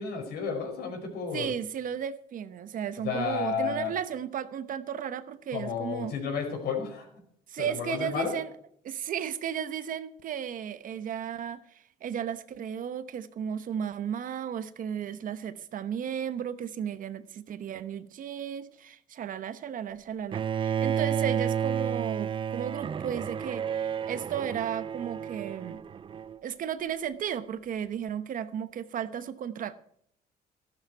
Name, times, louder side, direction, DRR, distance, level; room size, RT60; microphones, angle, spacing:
voice 1, 0.0-1.5 3.0-3.9 5.5-7.1 7.6-8.3, left 6 dB, 70° left, 4 dB, 5.1 m, -32 dB
voice 2, 1.3-6.1 7.5-8.5 8.8-25.8 26.4-29.7, right 9 dB, 55° right, 13 dB, 0.9 m, -34 dB
Bowed string instrument, 20.3-26.4, right 8 dB, 30° right, 0.4 m, -31 dB
13.5 x 12.5 x 4.6 m, 0.68 s
cardioid pair, 110°, 17 cm